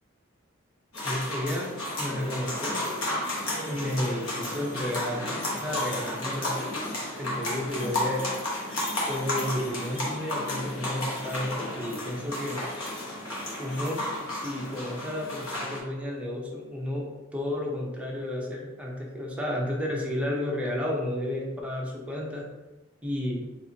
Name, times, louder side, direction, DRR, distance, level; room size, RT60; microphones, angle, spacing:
sound 1, 0.9-15.8, left 1 dB, 85° left, 1.0 m, -32 dB
voice 1, 1.0-2.8 3.7-5.3 5.5-6.6 7.2-8.2 9.1-12.6 13.6-17.1 17.3-22.4 23.0-23.5, left 1 dB, 5° right, -3 dB, 0.6 m, -32 dB
4.2 x 2.5 x 2.7 m, 1.1 s
head